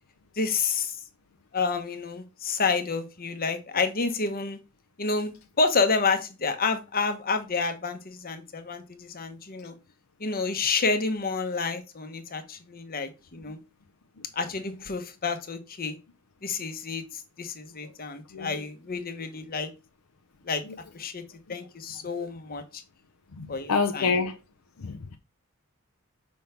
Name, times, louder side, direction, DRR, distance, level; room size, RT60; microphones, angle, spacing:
voice 1, 0.3-1.0 1.5-4.6 5.0-9.7 10.2-13.6 14.3-16.0 16.4-19.7 20.4-20.6 20.9-21.2 21.5-22.8 23.5-24.1, left 4 dB, 45° left, 1.0 m, -29 dB
voice 2, 23.4-24.4 24.8-25.2, left 4 dB, 75° left, 0.6 m, -27 dB
5.4 x 3.4 x 5.7 m
head